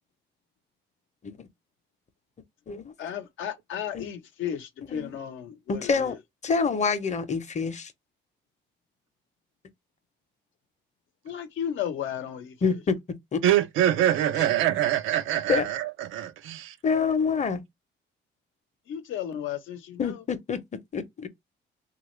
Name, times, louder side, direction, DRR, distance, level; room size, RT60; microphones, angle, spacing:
voice 1, 3.0-6.2 11.2-12.8 18.9-20.2, left 9 dB, 80° left, 0.7 m, -34 dB
voice 2, 5.7-6.1 6.4-7.9 12.6-13.0 13.3-13.4 15.5-15.7 16.8-17.6 20.0-21.3, left 5 dB, 35° left, 0.7 m, -27 dB
voice 3, 13.4-16.8, right 12 dB, 90° right, 0.5 m, -24 dB
3.1 x 2.4 x 3.0 m
cardioid pair, 90°, 20 cm